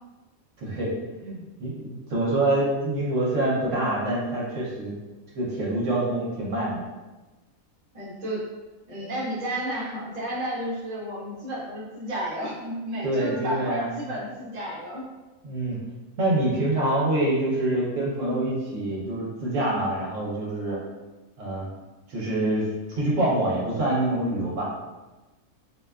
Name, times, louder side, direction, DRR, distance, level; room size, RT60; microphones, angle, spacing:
voice 1, 0.6-0.9 1.2-5.0 5.3-6.8 13.0-14.0 15.4-15.8 16.2-20.8 21.4-21.7 22.1-24.7, right 1 dB, 65° right, -5 dB, 0.9 m, -26 dB
voice 2, 7.9-8.4 8.9-15.1, right 1 dB, 45° right, -6 dB, 0.6 m, -32 dB
2.6 x 2.2 x 2.2 m, 1.1 s
omnidirectional pair, 1.5 m